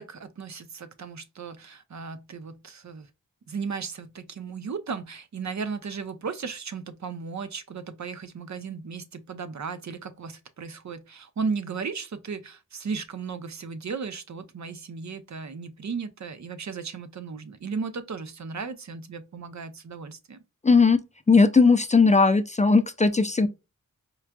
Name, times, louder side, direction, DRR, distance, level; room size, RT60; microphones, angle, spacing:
voice 1, 0.0-3.1 3.5-20.4, right 5 dB, 55° right, 0.6 m, -35 dB
voice 2, 20.6-21.0 21.3-23.5, left 4 dB, 20° left, 0.3 m, -18 dB
4.5 x 2.4 x 2.2 m
cardioid pair, 55°, 34 cm